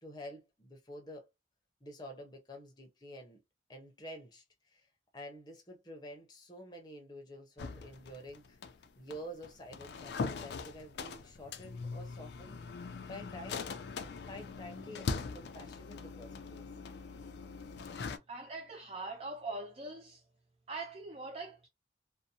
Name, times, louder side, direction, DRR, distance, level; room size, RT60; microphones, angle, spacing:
voice 1, 0.0-1.3 1.8-3.4 3.7-4.9 5.1-8.6 9.0-12.6 13.0-13.7 14.3-16.6, equal, 25° left, 0.6 m, -49 dB
sound 1, 7.6-18.2, left 4 dB, 70° left, 0.3 m, -41 dB
voice 2, 18.3-20.2 20.7-21.7, right 2 dB, 35° right, 0.3 m, -42 dB
2.6 x 2.0 x 2.7 m
head